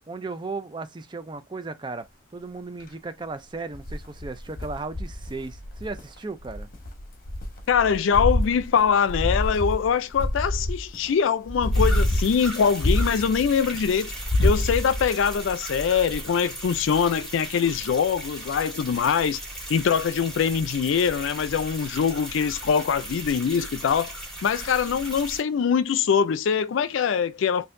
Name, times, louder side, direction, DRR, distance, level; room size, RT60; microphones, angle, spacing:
voice 1, 0.1-2.1 2.3-6.7, right 3 dB, 25° right, 0.4 m, -35 dB
sound 1, 3.7-6.0 6.4-11.1 11.5-13.7 14.1-15.1, left 1 dB, 50° left, 0.9 m, -26 dB
voice 2, 7.7-14.1 14.4-19.4 19.7-24.1 24.4-27.7, left 7 dB, 85° left, 0.4 m, -23 dB
sound 2, 11.7-25.4, right 1 dB, ahead, 2.3 m, -37 dB
4.3 x 2.6 x 2.5 m
head